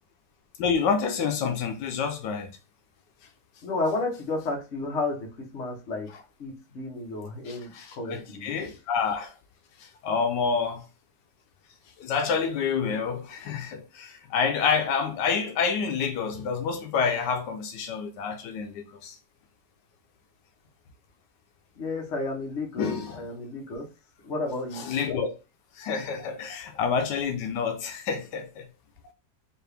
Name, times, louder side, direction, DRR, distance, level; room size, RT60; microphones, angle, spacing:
voice 1, 0.6-2.5 7.5-9.3 9.8-10.8 12.0-19.2 22.8-23.2 24.7-25.3 25.8-28.6, left 6 dB, 80° left, 1.2 m, -28 dB
voice 2, 3.6-6.1 6.4-8.5 21.8-23.9 24.2-24.9, left 2 dB, 45° left, 1.1 m, -32 dB
4.6 x 2.4 x 3.3 m
omnidirectional pair, 1.9 m